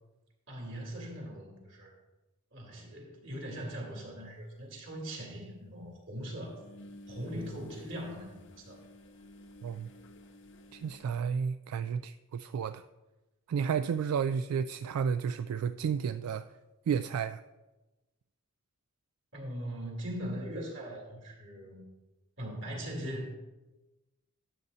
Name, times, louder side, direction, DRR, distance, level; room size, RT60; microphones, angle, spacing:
voice 1, 0.5-1.9 2.5-6.6 7.1-8.8 19.3-21.8 22.4-23.3, equal, 55° right, 2.7 m, -40 dB
sound 1, 4.5-4.6 6.4-11.0, left 1 dB, 55° left, 0.7 m, -53 dB
voice 2, 10.7-12.8 13.5-16.4 16.9-17.4, right 7 dB, 85° right, 0.3 m, -32 dB
12.5 x 7.9 x 2.7 m
head